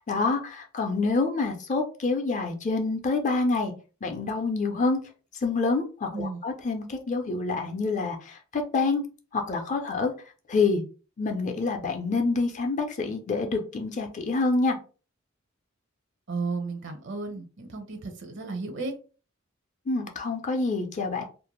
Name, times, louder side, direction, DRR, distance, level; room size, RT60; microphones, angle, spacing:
voice 1, 0.1-3.7 4.0-5.0 5.4-9.0 9.3-10.1 10.5-10.8 11.2-14.8 19.9-21.2, left 3 dB, 40° left, 4 dB, 0.5 m, -27 dB
voice 2, 16.3-18.9, right 3 dB, 65° right, 6 dB, 0.6 m, -33 dB
2.5 x 2.1 x 2.9 m, 0.35 s
head